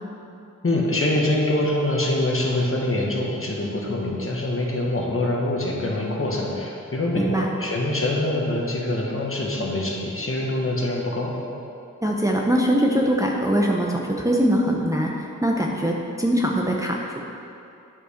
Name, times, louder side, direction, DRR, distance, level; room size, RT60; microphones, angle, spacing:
voice 1, 0.6-11.3, left 1 dB, 45° left, -2 dB, 1.5 m, -24 dB
voice 2, 7.1-7.5 12.0-15.1 15.4-17.0, equal, 10° right, -1 dB, 0.8 m, -22 dB
9.2 x 5.4 x 5.2 m, 2.7 s
cardioid pair, 65°, 32 cm